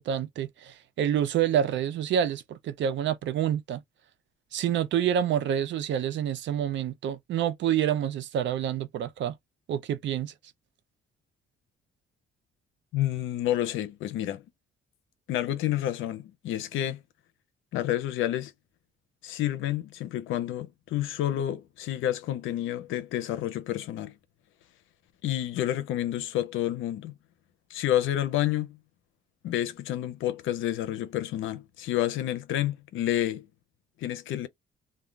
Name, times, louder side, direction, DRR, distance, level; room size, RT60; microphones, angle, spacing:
voice 1, 0.0-3.8 4.5-9.3 9.7-10.3, right 9 dB, 70° right, 0.5 m, -27 dB
voice 2, 12.9-14.4 15.3-17.0 17.7-18.5 19.2-24.1 25.2-27.1 27.7-28.8 29.4-33.5 34.0-34.5, left 12 dB, 85° left, 0.6 m, -29 dB
2.3 x 2.2 x 3.2 m
cardioid pair, 90°, 20 cm